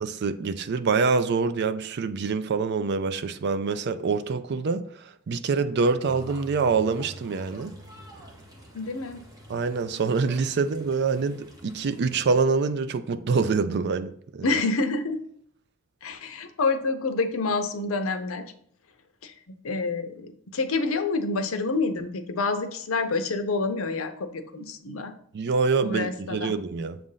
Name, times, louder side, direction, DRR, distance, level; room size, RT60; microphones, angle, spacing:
voice 1, 0.0-7.8 9.5-14.5 25.3-27.0, right 4 dB, 55° right, 0.4 m, -25 dB
sound 1, 6.0-12.4, right 1 dB, 15° right, 1.0 m, -46 dB
voice 2, 8.7-9.2 14.4-15.2 16.0-18.4 19.2-25.1 25.8-26.6, left 3 dB, 75° left, 0.7 m, -28 dB
7.3 x 2.5 x 5.5 m
head